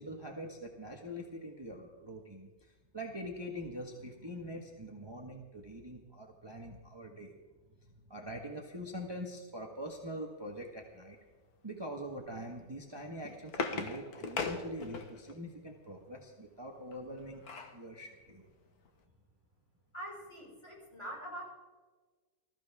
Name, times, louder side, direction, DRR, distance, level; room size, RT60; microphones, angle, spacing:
voice 1, 0.0-7.4 8.1-11.2 11.6-18.5, equal, 15° right, 1 dB, 1.3 m, -44 dB
sound 1, 12.9-15.4 16.9-17.8 18.3-18.4 18.7-18.9, left 4 dB, 75° left, 1.8 m, -39 dB
voice 2, 19.9-21.4, right 1 dB, 15° left, -4 dB, 5.5 m, -44 dB
20.0 x 14.5 x 3.6 m, 1.3 s
omnidirectional pair, 1.7 m